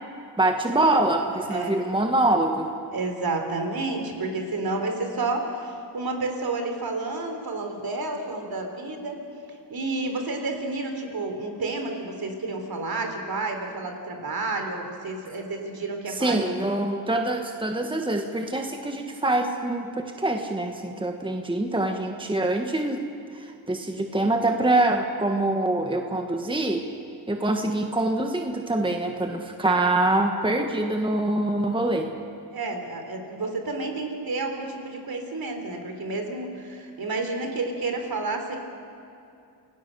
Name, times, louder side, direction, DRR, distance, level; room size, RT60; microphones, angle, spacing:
voice 1, 0.4-2.7 16.1-23.0 23.3-26.8 27.3-32.1, right 2 dB, 10° right, 4 dB, 1.5 m, -25 dB
voice 2, 1.4-1.8 2.9-9.2 9.7-16.6 32.5-38.6, right 3 dB, 55° right, 4 dB, 3.8 m, -30 dB
29.0 x 17.5 x 6.8 m, 2.6 s
cardioid pair, 95°, 43 cm